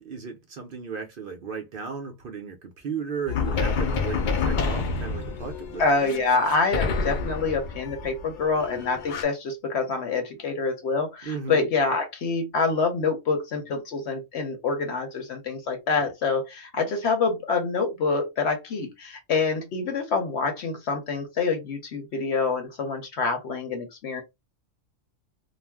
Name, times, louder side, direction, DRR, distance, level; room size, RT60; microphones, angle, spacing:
voice 1, 0.0-6.2 11.2-11.6 16.0-16.1, right 6 dB, 55° right, 0.6 m, -35 dB
sound 1, 3.3-9.2, left 4 dB, 75° left, 0.4 m, -29 dB
voice 2, 5.8-24.2, left 4 dB, 60° left, 0.8 m, -26 dB
2.4 x 2.0 x 3.3 m
omnidirectional pair, 1.4 m